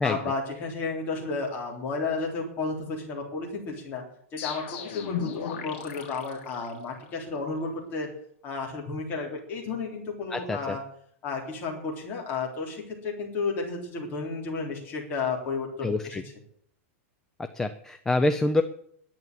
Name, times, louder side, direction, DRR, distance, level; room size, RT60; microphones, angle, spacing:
voice 1, 0.0-4.0 4.3-8.1 8.4-10.8 11.2-16.2, left 4 dB, 25° left, 0 dB, 3.7 m, -32 dB
sound 1, 4.4-7.1, left 7 dB, 50° left, 3.1 m, -36 dB
voice 2, 10.3-10.8 15.8-16.2 17.5-18.6, left 2 dB, 5° left, 9 dB, 0.4 m, -26 dB
11.0 x 8.7 x 9.3 m, 0.65 s
supercardioid pair, 170°, 7 cm